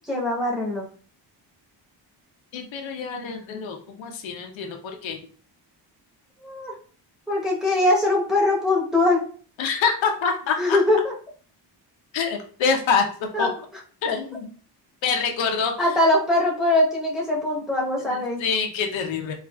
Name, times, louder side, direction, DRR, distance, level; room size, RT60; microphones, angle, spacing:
voice 1, 0.1-0.9 6.4-6.7 7.3-9.3 10.6-11.1 13.3-13.5 15.8-18.4, left 2 dB, ahead, -3 dB, 0.9 m, -22 dB
voice 2, 2.5-5.2 9.6-10.8 12.1-13.5 14.0-14.5 15.0-16.0 18.0-19.4, left 5 dB, 85° left, 3 dB, 0.8 m, -26 dB
4.6 x 2.4 x 2.2 m, 0.42 s
cardioid pair, 135°, 44 cm